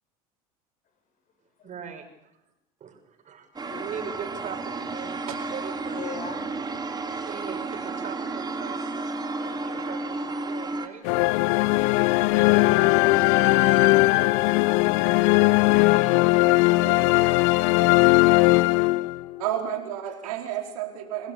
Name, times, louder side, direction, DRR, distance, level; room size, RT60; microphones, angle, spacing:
voice 1, 1.6-2.3 2.8-3.5 3.8-6.0 7.0-11.0 13.6-14.1 15.1-16.2 16.7-17.9 20.2-20.3, right 7 dB, 40° right, 5 dB, 6.5 m, -41 dB
sound 1, 3.6-10.9, right 3 dB, 20° right, 3.2 m, -32 dB
voice 2, 5.9-6.4 12.3-13.6 18.0-18.5, left 5 dB, 45° left, 6 dB, 7.7 m, -40 dB
sound 2, 11.0-19.4, left 22 dB, 60° left, 0.8 m, -19 dB
Wind instrument woodwind instrument, 12.5-20.2, left 1 dB, 90° left, 4.5 m, -48 dB
voice 3, 19.4-21.3, right 11 dB, 70° right, 3 dB, 4.5 m, -31 dB
28.5 x 19.0 x 7.0 m, 0.82 s
hypercardioid pair, 75°, 19 cm